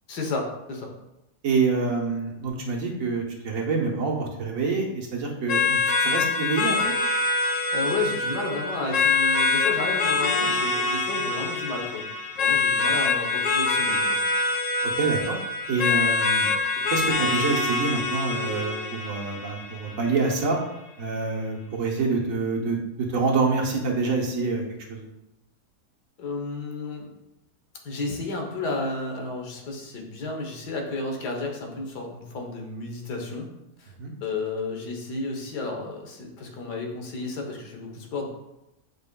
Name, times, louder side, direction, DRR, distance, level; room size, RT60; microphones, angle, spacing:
voice 1, 0.1-0.9 7.7-12.0 12.4-14.2 26.2-27.1 27.8-33.5 33.8-33.9 34.2-38.3, left 3 dB, 85° left, 2 dB, 1.6 m, -32 dB
voice 2, 1.4-6.9 15.0-15.4 15.7-16.5 16.9-20.6 21.0-24.6 24.9-25.0 34.0-34.1, right 4 dB, 60° right, -1 dB, 1.4 m, -26 dB
sound 1, 5.5-20.5, left 3 dB, 65° left, 0.8 m, -25 dB
7.7 x 5.4 x 2.2 m, 0.91 s
omnidirectional pair, 1.7 m